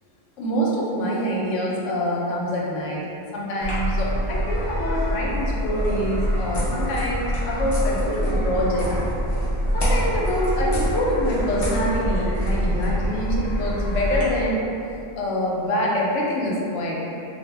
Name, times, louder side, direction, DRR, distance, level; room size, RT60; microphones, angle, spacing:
voice 1, 0.4-3.0 3.3-8.9 9.7-14.6 15.1-17.0, equal, 75° left, -4 dB, 0.9 m, -25 dB
sound 1, 3.6-14.2, equal, 30° left, 0.5 m, -25 dB
2.4 x 2.0 x 3.2 m, 2.7 s
omnidirectional pair, 1.3 m